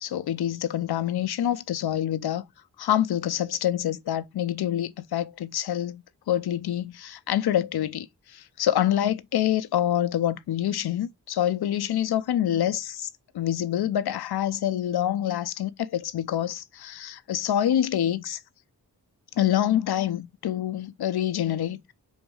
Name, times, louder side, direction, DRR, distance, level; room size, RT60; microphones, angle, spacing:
voice 1, 0.0-2.4 2.8-13.1 13.3-18.4 19.4-21.8, left 11 dB, 90° left, 0.5 m, -26 dB
4.0 x 2.6 x 4.6 m
cardioid pair, 55°, 37 cm